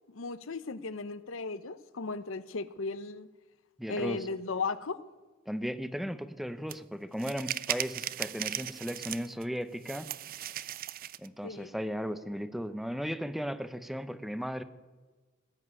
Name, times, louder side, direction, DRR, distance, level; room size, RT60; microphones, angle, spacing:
voice 1, 0.1-3.3 3.9-5.0 11.4-11.7, left 4 dB, 75° left, 0.8 m, -36 dB
voice 2, 3.8-4.3 5.5-10.1 11.2-14.6, equal, ahead, 0.7 m, -36 dB
sound 1, 6.7-6.8 7.2-9.4 9.8-11.3, right 12 dB, 45° right, 0.5 m, -37 dB
19.0 x 7.3 x 9.7 m
head